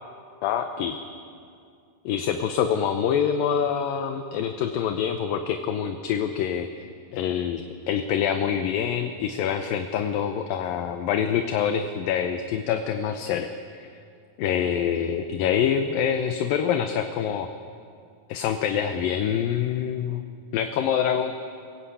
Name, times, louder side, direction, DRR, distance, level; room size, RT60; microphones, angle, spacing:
voice 1, 0.4-1.0 2.1-6.7 7.1-13.9 14.4-17.5 18.3-20.2 20.5-21.3, left 8 dB, 75° left, 7 dB, 2.5 m, -26 dB
27.5 x 16.5 x 8.5 m, 2.4 s
omnidirectional pair, 4.4 m